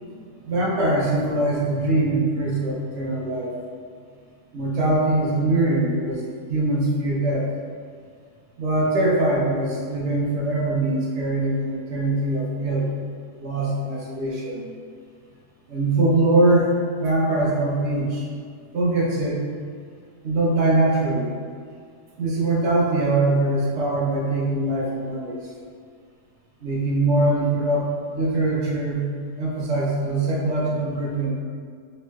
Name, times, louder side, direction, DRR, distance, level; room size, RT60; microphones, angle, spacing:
voice 1, 0.4-3.5 4.5-6.2 6.5-7.5 8.6-12.9 13.4-14.7 15.7-16.7 17.0-18.3 18.7-19.4 20.2-21.3 22.2-25.4 26.6-29.1 29.4-31.3, right 2 dB, 55° right, -4 dB, 0.8 m, -22 dB
4.3 x 3.0 x 2.3 m, 2.1 s
omnidirectional pair, 1.8 m